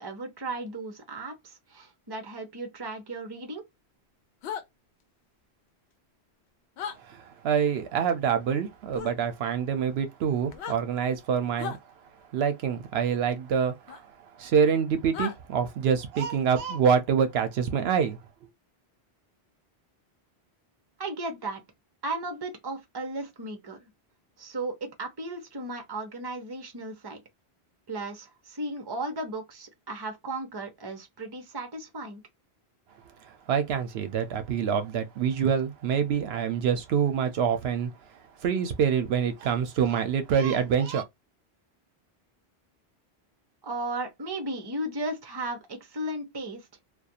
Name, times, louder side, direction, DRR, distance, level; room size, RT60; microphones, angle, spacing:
voice 1, 0.0-3.6 21.0-21.6 22.0-23.9 24.4-27.2 27.9-32.2 43.6-46.7, right 2 dB, 25° right, 0.7 m, -35 dB
sound 1, 4.4-4.6 6.8-7.0 8.9-9.1 10.5-10.8 11.6-11.8 13.9-14.0 15.1-15.4, left 7 dB, 80° left, 0.8 m, -35 dB
voice 2, 7.0-11.8 12.3-18.2 33.2-37.9 38.4-41.0, right 7 dB, 75° right, 0.8 m, -26 dB
2.4 x 2.3 x 2.7 m
omnidirectional pair, 1.1 m